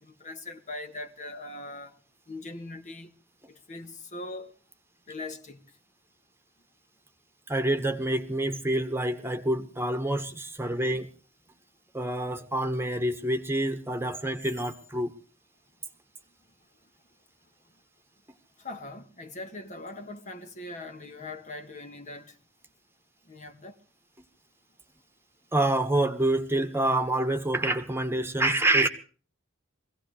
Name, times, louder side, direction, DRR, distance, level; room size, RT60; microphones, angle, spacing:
voice 1, 0.0-2.0 2.3-3.1 3.5-4.5 5.1-5.6 18.6-22.4 23.3-23.8, left 2 dB, 35° left, 1.6 m, -41 dB
voice 2, 7.5-11.1 11.9-15.1 25.5-28.9, right 1 dB, 10° right, 1.5 m, -27 dB
24.5 x 16.5 x 3.3 m
head